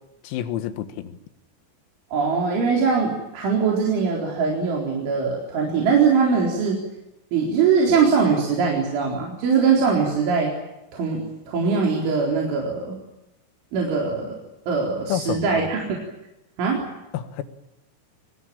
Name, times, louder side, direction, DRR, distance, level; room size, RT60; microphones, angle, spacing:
voice 1, 0.2-1.2 15.1-15.6 17.1-17.4, left 11 dB, 90° left, 10 dB, 4.3 m, -29 dB
voice 2, 2.1-6.8 7.3-10.5 10.9-13.0 13.7-14.4 14.7-15.9 16.6-16.8, right 5 dB, 65° right, -1 dB, 6.4 m, -21 dB
25.0 x 22.5 x 8.8 m, 0.94 s
omnidirectional pair, 6.0 m